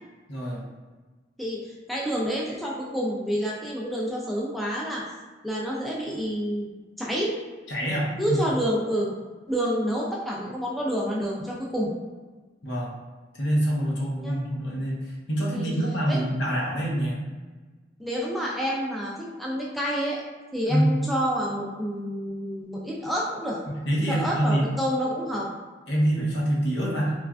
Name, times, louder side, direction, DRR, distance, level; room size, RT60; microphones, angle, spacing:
voice 1, 0.3-0.6 7.7-8.4 12.6-12.9 13.4-14.9 15.3-17.2 20.7-20.9 23.7-24.7 25.9-27.1, right 1 dB, 80° left, -4 dB, 0.8 m, -25 dB
voice 2, 1.4-5.1 5.4-6.7 7.0-7.4 8.2-9.1 9.5-11.9 14.2-14.4 15.5-15.7 16.1-16.2 18.0-20.2 20.5-23.6 24.1-25.5, equal, ahead, -4 dB, 0.3 m, -28 dB
3.1 x 2.4 x 2.3 m, 1.3 s
head